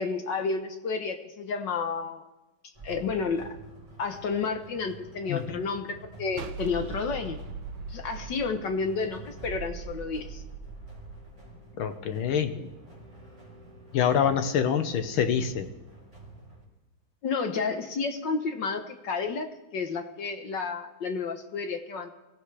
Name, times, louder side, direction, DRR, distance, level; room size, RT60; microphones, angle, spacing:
voice 1, 0.0-2.2 2.8-3.5 4.0-7.4 7.9-10.4 17.2-22.1, left 4 dB, 65° left, 6 dB, 1.6 m, -31 dB
sound 1, 2.7-16.7, right 3 dB, 15° right, 4.7 m, -46 dB
voice 2, 5.3-5.6 11.8-12.7 13.9-15.7, left 8 dB, 80° left, 8 dB, 1.9 m, -26 dB
sound 2, 6.4-9.6, right 3 dB, 75° right, 1.6 m, -39 dB
24.0 x 15.5 x 3.3 m, 1.0 s
omnidirectional pair, 2.3 m